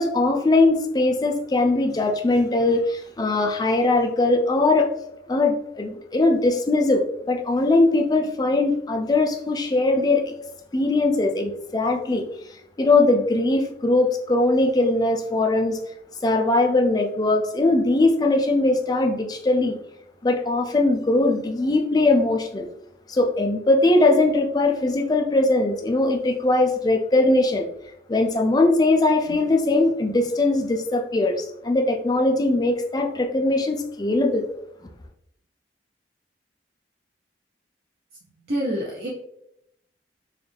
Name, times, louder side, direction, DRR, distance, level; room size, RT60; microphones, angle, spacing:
voice 1, 0.0-4.9 5.3-10.3 10.7-15.8 16.2-19.8 20.2-22.7 23.1-27.7 28.1-34.4, left 2 dB, 20° left, 3 dB, 0.4 m, -20 dB
voice 2, 38.5-39.1, equal, 60° right, -5 dB, 0.6 m, -27 dB
3.9 x 2.4 x 3.3 m, 0.79 s
head